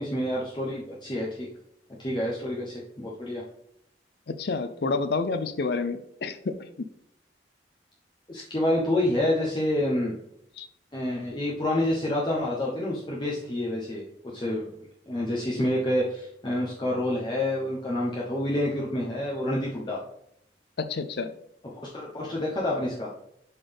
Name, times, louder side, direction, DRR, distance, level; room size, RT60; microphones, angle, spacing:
voice 1, 0.0-1.5 2.0-3.4 8.3-10.1 10.9-14.7 15.1-20.0 21.9-23.1, left 1 dB, 25° left, -5 dB, 0.9 m, -28 dB
voice 2, 4.3-6.9 10.6-10.7 20.8-21.3, left 4 dB, 60° left, 9 dB, 0.5 m, -29 dB
11.0 x 4.0 x 3.4 m, 0.75 s
head